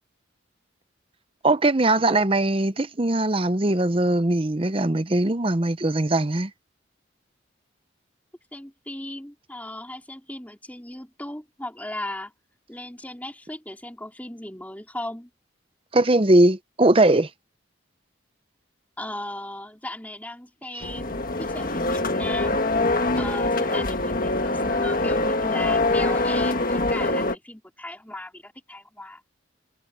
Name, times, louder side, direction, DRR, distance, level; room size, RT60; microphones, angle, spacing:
voice 1, 1.4-6.5 15.9-17.3, right 2 dB, 30° right, 0.8 m, -20 dB
voice 2, 8.5-12.3 12.7-15.3 19.0-22.6 23.1-29.2, left 1 dB, 10° left, 3.7 m, -37 dB
sound 1, 20.8-27.3, left 2 dB, 45° left, 1.8 m, -24 dB
head